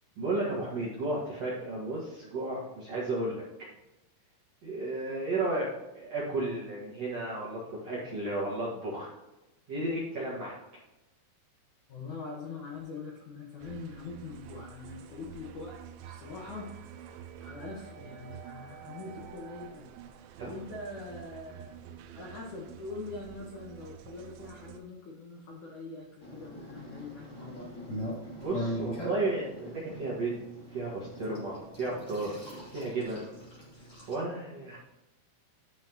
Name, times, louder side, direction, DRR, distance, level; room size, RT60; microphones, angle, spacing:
voice 1, 0.2-3.4 4.6-5.7 5.9-9.1 9.7-10.6 20.4-20.5 28.4-30.4 30.7-32.4 32.7-33.3 34.1-34.8, right 2 dB, 55° right, -6 dB, 1.9 m, -33 dB
voice 2, 11.9-15.8 16.0-16.7 17.0-19.9 20.4-21.8 22.1-27.9, left 3 dB, 70° left, -3 dB, 1.9 m, -43 dB
sound 1, 13.6-24.8, right 9 dB, 85° right, 3.0 m, -48 dB
sound 2, 26.2-34.1, equal, 25° left, 2.7 m, -41 dB
11.5 x 5.8 x 3.0 m, 0.98 s
omnidirectional pair, 5.4 m